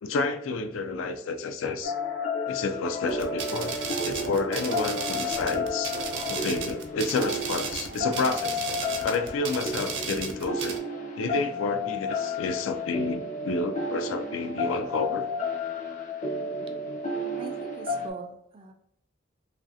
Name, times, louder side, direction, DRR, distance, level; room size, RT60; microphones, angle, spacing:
voice 1, 0.0-1.9 2.5-3.7 4.0-6.0 6.3-8.6 9.0-10.7 11.2-15.3, left 3 dB, 90° left, 7 dB, 0.4 m, -30 dB
sound 1, 1.8-18.1, left 3 dB, 40° left, 0.5 m, -32 dB
sound 2, 3.1-10.8, right 5 dB, 70° right, 0.6 m, -35 dB
voice 2, 17.4-18.7, right 3 dB, 25° right, 4 dB, 0.3 m, -41 dB
3.1 x 2.5 x 2.6 m, 0.79 s
head